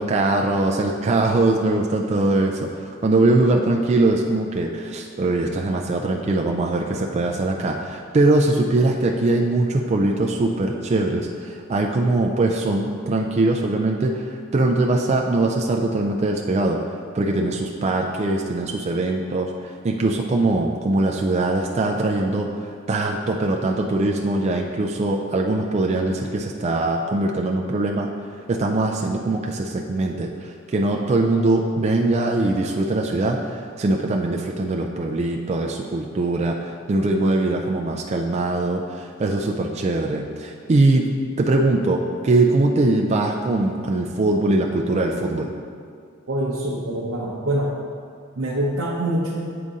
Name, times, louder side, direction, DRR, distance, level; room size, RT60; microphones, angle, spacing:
voice 1, 0.0-16.8 17.1-28.1 28.5-41.0 41.4-45.5, right 2 dB, 30° right, 1 dB, 0.3 m, -22 dB
voice 2, 46.3-47.7 48.4-49.5, right 1 dB, 70° right, -5 dB, 0.7 m, -25 dB
7.6 x 4.0 x 3.6 m, 2.2 s
head